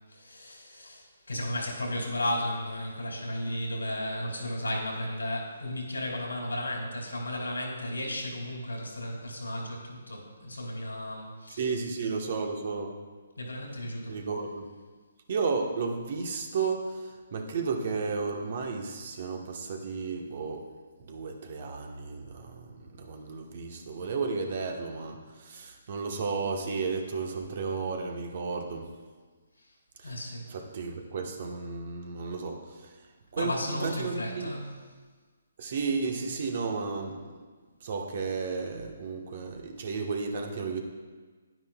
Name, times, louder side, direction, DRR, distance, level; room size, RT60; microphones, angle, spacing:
voice 1, 0.1-11.7 13.4-14.2 30.0-30.5 33.4-34.7, left 1 dB, 90° left, -1 dB, 2.6 m, -34 dB
voice 2, 11.6-12.9 14.1-14.7 15.3-20.6 21.0-28.9 30.0-30.2 30.5-32.9 33.3-34.5 35.6-37.3 37.8-40.8, right 4 dB, 50° right, 3 dB, 1.2 m, -33 dB
10.5 x 9.4 x 2.3 m, 1.4 s
figure-of-eight pair, 140°, 0 cm